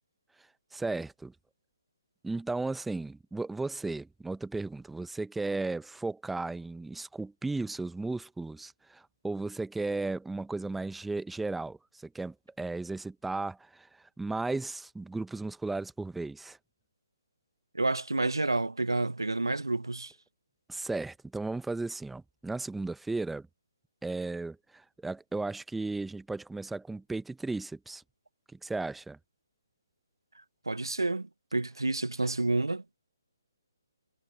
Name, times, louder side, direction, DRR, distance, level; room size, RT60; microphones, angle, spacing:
voice 1, 0.7-1.3 2.2-13.9 14.2-16.6 20.7-23.5 24.0-28.0 28.6-29.2, right 3 dB, 5° right, 1.0 m, -35 dB
voice 2, 17.7-20.1 30.6-32.8, right 2 dB, 85° right, 1.2 m, -29 dB
figure-of-eight pair, 140°, 2 cm